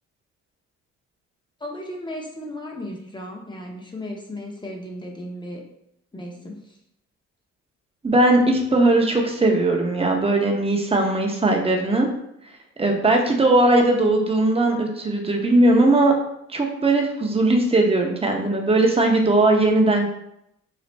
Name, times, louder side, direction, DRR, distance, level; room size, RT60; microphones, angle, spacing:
voice 1, 1.6-5.6 6.1-6.8, left 1 dB, 15° left, 0 dB, 0.7 m, -35 dB
voice 2, 8.0-12.1 12.8-16.1 16.5-20.1, right 2 dB, 20° right, 1 dB, 0.7 m, -19 dB
3.2 x 2.4 x 4.0 m, 0.79 s
cardioid pair, 90°, 30 cm